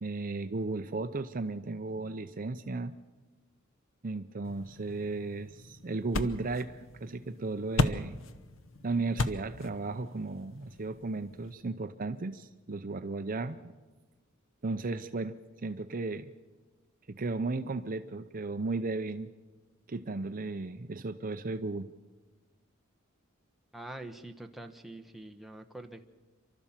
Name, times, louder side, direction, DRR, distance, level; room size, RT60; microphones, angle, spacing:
voice 1, 0.0-2.9 4.0-8.2 8.8-13.7 14.6-16.3 17.1-19.3 19.9-21.9, right 3 dB, 40° right, 10 dB, 0.6 m, -35 dB
sound 1, 4.4-11.5, left 2 dB, 70° left, 0.9 m, -37 dB
voice 2, 23.7-26.0, right 1 dB, ahead, 4 dB, 1.1 m, -45 dB
28.5 x 12.5 x 7.4 m, 1.3 s
head